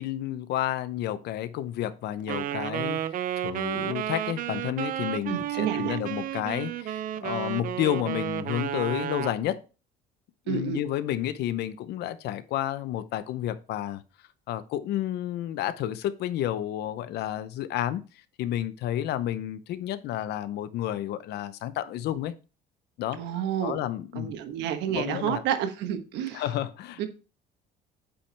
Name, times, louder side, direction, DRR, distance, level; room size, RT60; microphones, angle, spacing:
voice 1, 0.0-9.6 10.5-14.0 14.5-18.0 18.4-22.3 23.0-24.3 25.0-25.4 26.3-27.0, left 12 dB, 70° left, 0.8 m, -31 dB
Wind instrument woodwind instrument, 2.3-9.4, right 11 dB, 50° right, 0.5 m, -32 dB
voice 2, 5.3-6.0 10.5-10.8 23.2-23.8 24.1-26.4 27.0-27.1, right 9 dB, 80° right, 1.3 m, -30 dB
8.3 x 5.6 x 3.4 m
cardioid pair, 125°, 18 cm